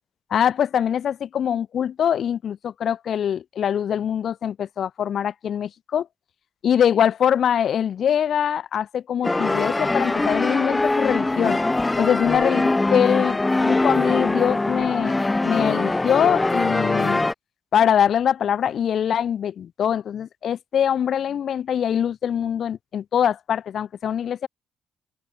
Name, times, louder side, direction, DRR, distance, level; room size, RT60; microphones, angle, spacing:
voice 1, 0.3-6.1 6.6-11.6 12.0-15.2 15.4-17.2 17.7-24.5, left 9 dB, 60° left, 0.9 m, -23 dB
sound 1, 9.2-17.3, left 2 dB, 15° left, 1.5 m, -22 dB
open air
cardioid pair, 90°, 0 cm